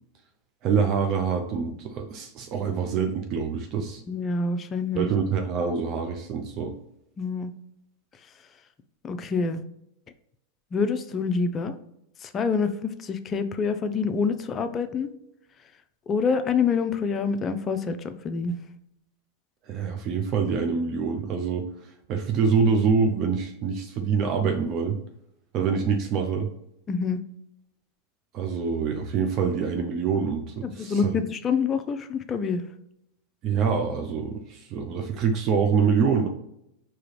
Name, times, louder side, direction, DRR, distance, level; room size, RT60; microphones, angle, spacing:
voice 1, 0.6-4.0 4.9-6.7 19.7-21.7 22.1-25.0 25.5-26.5 28.3-31.1 33.4-36.3, right 6 dB, 45° right, 4 dB, 0.5 m, -25 dB
voice 2, 4.1-5.1 7.2-7.5 9.0-9.6 10.7-11.8 12.2-15.1 16.1-18.6 26.9-27.2 30.6-32.6, left 5 dB, 30° left, 9 dB, 0.5 m, -26 dB
4.8 x 2.9 x 3.1 m, 0.80 s
hypercardioid pair, 105°, 0 cm